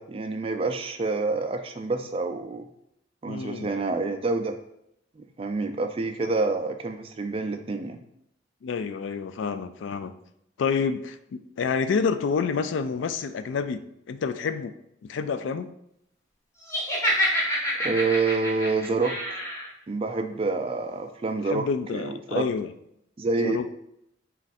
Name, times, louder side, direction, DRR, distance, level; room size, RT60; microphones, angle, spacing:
voice 1, 0.0-2.7 3.2-4.5 5.2-8.0 17.8-19.4 19.9-21.7 21.9-22.5 23.2-23.6, right 3 dB, 30° right, 6 dB, 0.3 m, -27 dB
voice 2, 3.3-3.7 8.6-10.1 10.6-14.7 15.0-15.7 21.5-22.7 23.3-23.6, left 5 dB, 75° left, 11 dB, 0.3 m, -28 dB
Laughter, 16.7-19.7, equal, 15° left, 0.7 m, -27 dB
4.4 x 2.5 x 4.0 m, 0.77 s
head